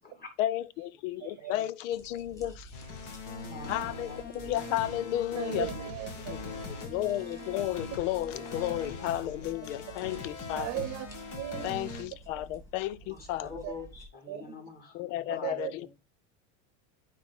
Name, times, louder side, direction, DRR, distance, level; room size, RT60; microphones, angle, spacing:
voice 1, 0.4-2.8 3.7-5.7 6.8-10.9 11.6-13.6 14.9-15.9, left 13 dB, 80° left, 0.7 m, -33 dB
voice 2, 1.2-1.6 3.2-4.5 5.4-5.8 6.2-6.8 9.0-9.4 13.0-16.0, left 4 dB, 25° left, 2.7 m, -48 dB
sound 1, 1.9-14.1, right 3 dB, 10° left, 2.2 m, -52 dB
sound 2, 2.7-12.0, left 3 dB, 55° left, 2.5 m, -41 dB
voice 3, 5.4-6.3 10.5-11.1 11.3-11.7 13.6-13.7 14.3-14.5 15.4-15.9, right 14 dB, 45° right, 0.9 m, -36 dB
9.4 x 3.7 x 4.0 m
supercardioid pair, 135°, 37 cm